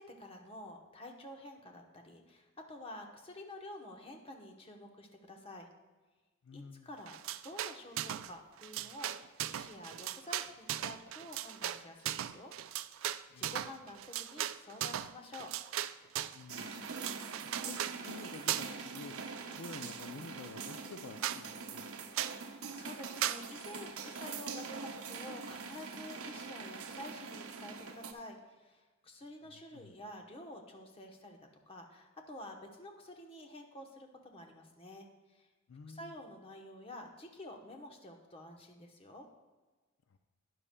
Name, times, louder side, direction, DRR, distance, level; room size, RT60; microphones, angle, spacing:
voice 1, 0.0-5.7 6.5-7.2 7.4-12.5 13.4-15.5 22.3-31.4 31.7-35.5 35.9-39.3, left 1 dB, 25° left, 3 dB, 1.0 m, -50 dB
voice 2, 6.4-6.9 13.3-13.6 16.3-16.7 17.5-19.2 19.4-21.8 29.7-29.9 35.7-36.1 40.1-40.2, left 4 dB, 70° left, 7 dB, 0.5 m, -49 dB
sound 1, 7.1-8.3 8.6-16.4 16.8-18.0 18.5-18.9 19.1-20.1 20.6-20.7 20.9-21.0 21.2-21.4 22.1-22.4 23.2-23.4, right 12 dB, 65° right, 0.3 m, -38 dB
sound 2, 16.5-28.1, right 5 dB, 85° right, 0.8 m, -44 dB
12.5 x 9.7 x 2.3 m, 1.3 s
head